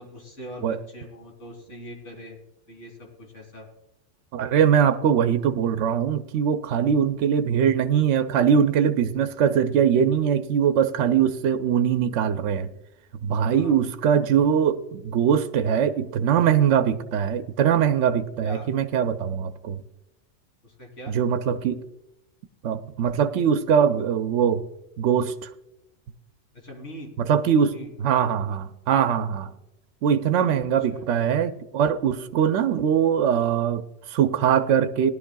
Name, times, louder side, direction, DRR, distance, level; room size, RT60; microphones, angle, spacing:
voice 1, 0.0-2.4 2.7-3.7 13.5-13.8 18.4-18.7 20.6-21.2 26.5-27.1 27.6-27.9 30.9-31.1, equal, 65° left, 0 dB, 3.1 m, -41 dB
voice 2, 4.3-12.7 13.2-19.8 21.1-21.8 22.6-24.6 25.0-25.5 27.2-27.7 28.0-29.5 30.0-35.1, right 8 dB, 70° right, 8 dB, 0.9 m, -22 dB
19.0 x 11.0 x 2.3 m, 0.89 s
omnidirectional pair, 1.3 m